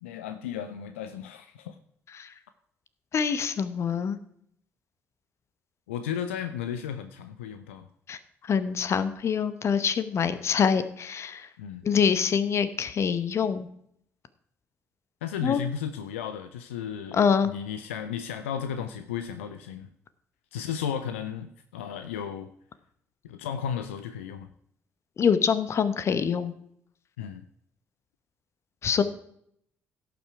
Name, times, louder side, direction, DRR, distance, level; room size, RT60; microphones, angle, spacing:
voice 1, 0.0-1.8 5.9-7.9 11.6-11.9 15.2-17.2 17.4-19.9 20.5-22.5 23.2-24.5 27.2-27.4, left 8 dB, 75° left, 10 dB, 0.5 m, -34 dB
voice 2, 3.1-4.2 8.1-8.2 8.4-11.5 11.8-13.7 15.4-15.6 17.1-17.5 25.2-26.5 28.8-29.0, left 6 dB, 40° left, 13 dB, 0.9 m, -25 dB
16.5 x 5.8 x 4.7 m, 0.70 s
figure-of-eight pair, 45°, 7 cm